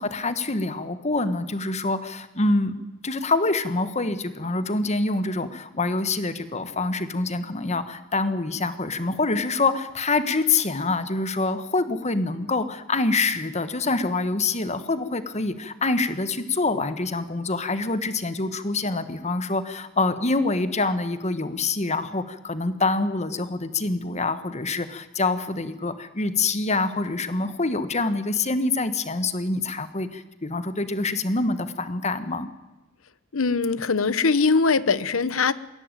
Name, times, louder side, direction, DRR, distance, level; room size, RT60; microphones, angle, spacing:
voice 1, 0.0-2.7 3.0-32.5, left 3 dB, 35° left, 11 dB, 1.5 m, -26 dB
voice 2, 33.3-35.5, left 4 dB, 85° left, 16 dB, 0.9 m, -21 dB
21.5 x 17.0 x 9.1 m, 1.0 s
head